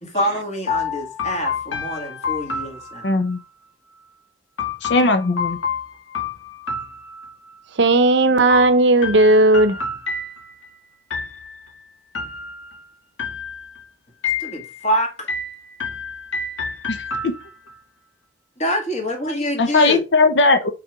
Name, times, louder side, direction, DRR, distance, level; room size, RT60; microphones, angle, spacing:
voice 1, 0.0-3.1 14.4-15.3 18.6-20.0, equal, 35° left, 1.9 m, -25 dB
sound 1, 0.7-3.4 4.6-7.6 8.5-10.7 11.1-11.7 12.1-12.8 13.2-13.8 14.2-14.9 15.3-17.8, left 5 dB, 80° left, 1.5 m, -29 dB
voice 2, 3.0-3.4 4.8-5.6 16.9-17.3 19.6-20.7, left 3 dB, 60° left, 0.7 m, -18 dB
voice 3, 7.8-9.8, right 2 dB, 60° right, 0.7 m, -15 dB
5.9 x 3.9 x 4.7 m
head